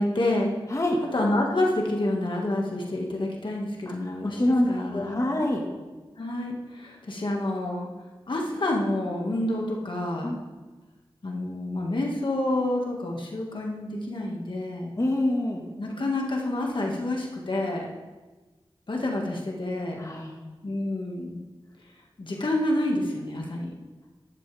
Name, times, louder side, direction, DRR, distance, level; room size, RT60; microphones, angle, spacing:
voice 1, 0.0-0.5 1.1-5.2 6.2-7.9 8.3-10.4 11.2-14.9 15.8-17.9 18.9-20.1 20.6-21.4 22.2-23.7, left 1 dB, 60° left, -1 dB, 1.9 m, -28 dB
voice 2, 3.9-5.6 10.2-10.4 15.0-15.6 20.0-20.4, left 1 dB, 35° left, 0 dB, 1.7 m, -26 dB
12.5 x 11.5 x 3.5 m, 1.2 s
wide cardioid pair, 60°, 10 cm